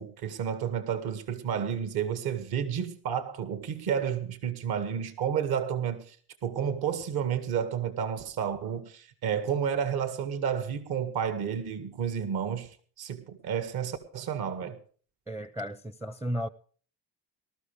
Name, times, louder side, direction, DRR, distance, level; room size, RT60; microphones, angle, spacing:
voice 1, 0.0-6.2 6.4-12.7 13.0-14.8, right 8 dB, 65° right, 2.1 m, -31 dB
voice 2, 15.3-16.5, equal, 5° right, 0.5 m, -34 dB
20.5 x 13.5 x 3.5 m
cardioid pair, 105°, 41 cm